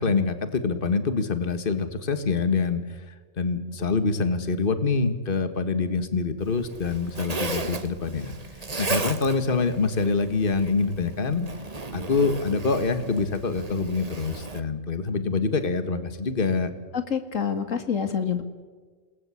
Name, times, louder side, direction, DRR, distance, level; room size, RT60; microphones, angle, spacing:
voice 1, 0.0-2.8 3.4-8.3 8.8-11.5 11.9-16.7, left 4 dB, 45° left, 10 dB, 1.8 m, -25 dB
Zipper (clothing), 6.4-14.6, right 3 dB, 30° right, 1.4 m, -35 dB
voice 2, 16.9-18.4, left 7 dB, 80° left, 8 dB, 2.4 m, -27 dB
28.0 x 20.0 x 8.5 m, 1.5 s
omnidirectional pair, 1.3 m